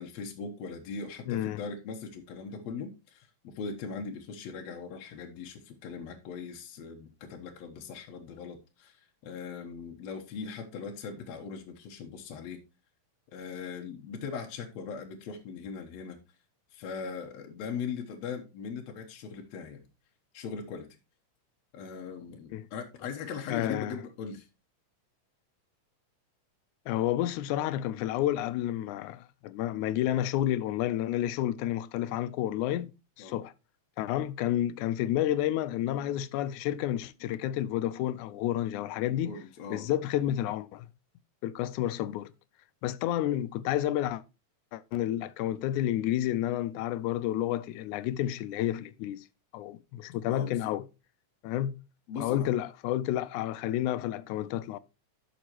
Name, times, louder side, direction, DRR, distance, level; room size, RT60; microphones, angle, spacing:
voice 1, 0.0-12.6 13.3-16.2 16.7-19.9 20.3-21.0 21.7-24.5 33.2-33.4 39.3-39.9 50.2-50.7 52.1-52.5, left 5 dB, 70° left, 2.2 m, -40 dB
voice 2, 1.3-1.6 22.5-22.7 23.5-24.0 26.9-33.5 34.0-39.3 39.7-40.9 41.4-42.3 42.8-44.2 44.7-49.2 49.5-50.9 51.4-51.8 52.2-54.8, left 12 dB, 85° left, 2.1 m, -30 dB
11.5 x 6.4 x 3.0 m
omnidirectional pair, 3.4 m